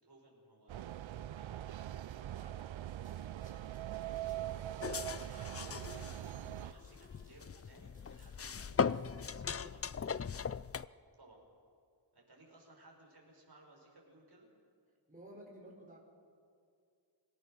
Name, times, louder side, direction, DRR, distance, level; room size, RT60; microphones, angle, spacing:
voice 1, 0.0-0.9 1.4-1.9 2.3-3.4 4.0-10.3 11.2-11.4 12.1-14.5, right 2 dB, 55° right, -1 dB, 5.4 m, -61 dB
sound 1, 0.7-6.7, right 12 dB, 80° right, 0.6 m, -42 dB
sound 2, 2.2-9.3, equal, 15° left, 7.0 m, -71 dB
sound 3, 4.8-10.9, left 6 dB, 35° left, 0.4 m, -39 dB
voice 2, 15.1-16.0, right 1 dB, 20° right, -2 dB, 4.9 m, -53 dB
27.0 x 17.5 x 6.4 m, 2.4 s
wide cardioid pair, 60°, 46 cm